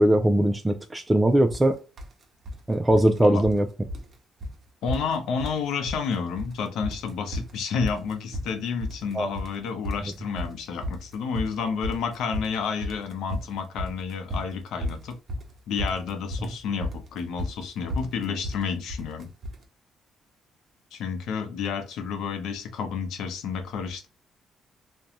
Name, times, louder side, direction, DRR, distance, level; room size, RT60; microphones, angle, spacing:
voice 1, 0.0-1.8 2.7-3.7 9.1-9.3, right 1 dB, 15° right, 0.3 m, -20 dB
sound 1, 1.5-1.7 2.0-2.6 2.9-3.6 3.9-4.1 4.4-4.6 4.9-5.6 5.9-6.5 6.8-19.6, left 1 dB, 45° right, 0.7 m, -34 dB
voice 2, 4.8-15.2 15.7-19.3 20.9-24.1, left 6 dB, 80° left, 0.6 m, -30 dB
2.5 x 2.2 x 2.8 m
cardioid pair, 90°, 0 cm